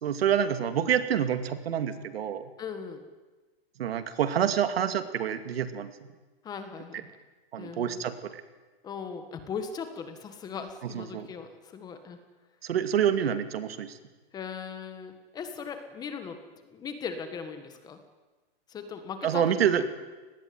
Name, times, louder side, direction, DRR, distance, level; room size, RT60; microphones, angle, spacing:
voice 1, 0.0-2.4 3.8-5.9 7.5-8.1 10.8-11.3 12.6-13.9 19.2-19.8, right 9 dB, 75° right, 9 dB, 2.5 m, -27 dB
voice 2, 2.6-3.0 6.4-7.1 7.6-8.0 8.8-12.2 14.3-16.4 16.7-18.0 18.7-19.9, left 6 dB, 15° left, 8 dB, 1.5 m, -39 dB
24.0 x 19.5 x 9.5 m, 1.3 s
supercardioid pair, 170°, 30 cm